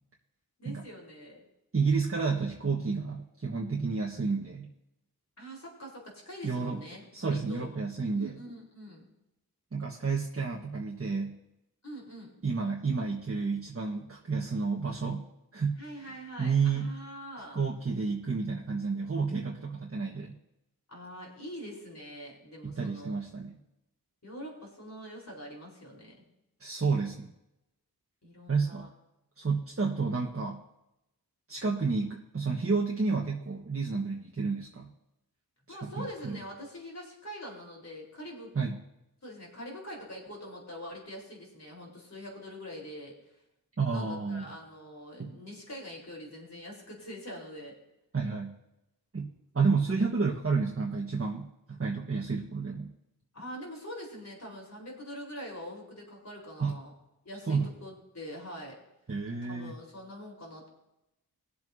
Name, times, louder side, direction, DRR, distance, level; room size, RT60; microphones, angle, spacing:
voice 1, 0.6-1.4 5.4-7.7 8.1-9.0 11.8-12.3 15.8-17.6 20.9-23.2 24.2-26.2 28.2-28.9 35.7-38.5 39.2-43.2 43.8-47.8 53.3-56.9 57.2-58.8 59.5-60.7, equal, 45° left, -2 dB, 4.4 m, -44 dB
voice 2, 1.7-4.7 6.4-6.8 7.1-8.4 9.7-11.4 12.4-15.8 16.4-16.9 17.5-20.4 22.6-23.6 26.6-27.3 28.5-28.9 29.4-30.6 31.5-34.9 35.8-36.4 38.5-38.8 43.8-44.4 45.2-45.3 48.1-48.6 49.1-49.3 49.5-52.9 56.6-56.8 57.5-57.7 59.1-59.7, right 4 dB, 35° right, -2 dB, 1.4 m, -30 dB
21.0 x 7.6 x 2.8 m, 0.88 s
wide cardioid pair, 75°, 38 cm